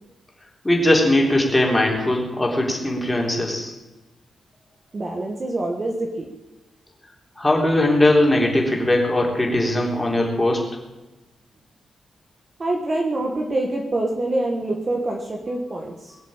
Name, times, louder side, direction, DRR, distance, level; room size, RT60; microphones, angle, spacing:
voice 1, 0.6-3.7 7.4-10.6, left 1 dB, 10° left, -1 dB, 3.5 m, -19 dB
voice 2, 4.9-6.3 12.6-16.2, right 2 dB, 30° right, 1 dB, 1.5 m, -25 dB
21.0 x 7.3 x 8.8 m, 1.1 s
wide cardioid pair, 155°, 0 cm